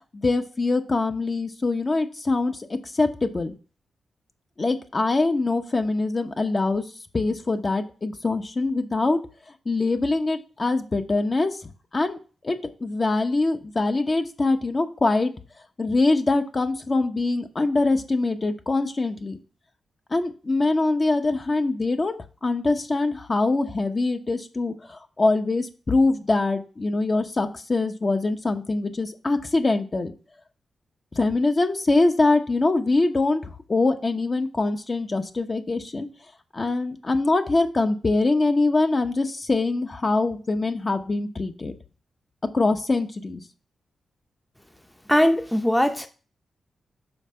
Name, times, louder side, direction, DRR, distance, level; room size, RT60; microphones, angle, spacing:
voice 1, 0.1-2.7 2.9-3.5 4.6-6.8 7.1-9.2 9.7-11.6 11.9-12.2 12.4-15.3 15.8-19.4 20.1-30.1 31.2-36.1 36.5-41.7 42.5-43.4, left 3 dB, 40° left, 1.0 m, -23 dB
voice 2, 45.1-46.1, equal, 5° left, 0.7 m, -20 dB
5.7 x 4.2 x 5.6 m
supercardioid pair, 45°, 0 cm